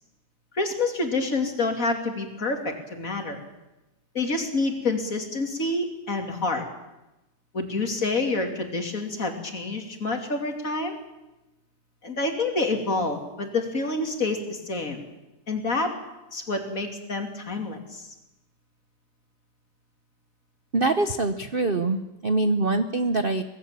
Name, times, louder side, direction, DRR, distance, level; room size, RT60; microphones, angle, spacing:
voice 1, 0.5-3.4 4.1-6.6 7.5-11.0 12.0-15.0 15.5-15.9 16.3-18.0, left 3 dB, 35° left, 4 dB, 3.1 m, -28 dB
voice 2, 20.7-23.4, right 2 dB, 45° right, 9 dB, 0.7 m, -24 dB
25.0 x 19.0 x 7.6 m, 0.99 s
omnidirectional pair, 2.4 m